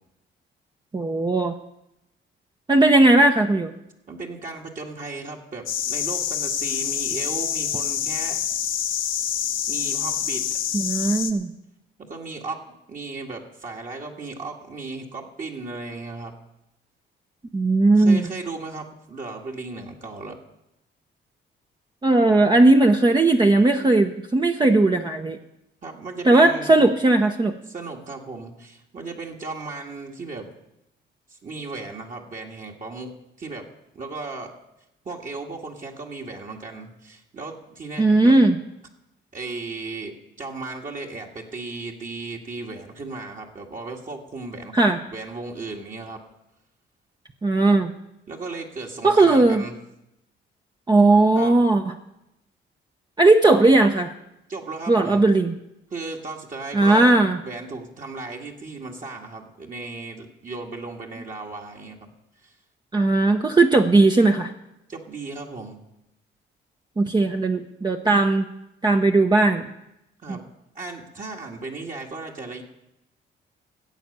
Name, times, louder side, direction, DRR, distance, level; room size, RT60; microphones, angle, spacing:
voice 1, 0.9-1.5 2.7-3.7 10.7-11.5 17.5-18.2 22.0-25.4 26.2-27.5 38.0-38.6 44.7-45.0 47.4-47.9 49.0-49.6 50.9-51.9 53.2-54.1 54.9-55.5 56.7-57.4 62.9-64.5 67.0-68.5 68.8-69.6 70.3-70.4, right 2 dB, 20° right, 3 dB, 0.9 m, -17 dB
voice 2, 4.1-8.4 9.7-10.5 12.1-16.4 17.9-20.4 25.8-26.7 27.7-30.5 31.3-33.7 33.9-34.5 35.1-38.4 39.3-44.8 45.1-46.2 48.3-49.8 51.4-51.6 54.5-55.3 55.9-62.1 62.4-62.6 64.9-65.8 70.2-70.4 70.8-72.6, right 3 dB, 40° right, -1 dB, 2.0 m, -36 dB
sound 1, 5.7-11.3, left 9 dB, 75° left, 1.3 m, -26 dB
15.0 x 8.4 x 6.8 m, 0.87 s
cardioid pair, 90°, 20 cm